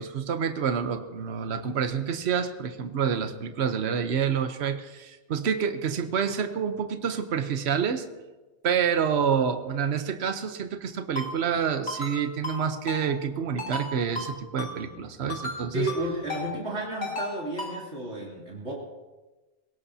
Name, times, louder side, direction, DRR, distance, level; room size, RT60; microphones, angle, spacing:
voice 1, 0.0-8.0 8.6-15.9, right 7 dB, 65° right, 8 dB, 1.1 m, -28 dB
Ringtone, 11.2-11.3 11.9-12.1 12.4-12.6 12.9-13.0 13.6-13.9 14.2-14.3 14.6-14.7 15.3-15.6 15.9-16.0 16.3-16.4 17.0-17.3 17.6-17.7, left 2 dB, 65° left, 3.5 m, -33 dB
voice 2, 15.7-18.7, right 1 dB, 85° right, -4 dB, 3.3 m, -32 dB
22.0 x 17.5 x 2.8 m, 1.2 s
omnidirectional pair, 1.2 m